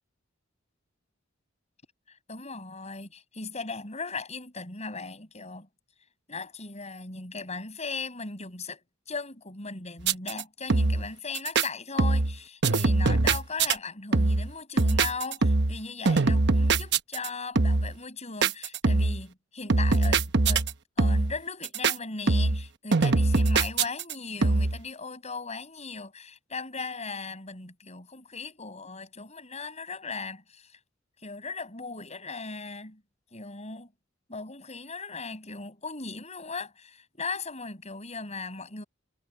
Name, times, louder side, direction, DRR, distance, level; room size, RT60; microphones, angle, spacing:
voice 1, 2.3-5.7 6.3-8.8 9.1-20.7 21.0-30.7 31.2-33.0 33.3-33.9 34.3-38.8, left 4 dB, 35° left, 7.1 m, -38 dB
sound 1, 10.0-10.4 10.7-11.1 11.4-11.7 12.0-12.4 12.6-13.8 14.1-14.5 14.8-15.8 16.1-17.3 17.6-17.9 18.4-19.2 19.7-20.7 21.0-21.4 21.6-22.0 22.3-22.7 22.9-24.1 24.4-24.8, right 3 dB, 60° right, 1.0 m, -23 dB
head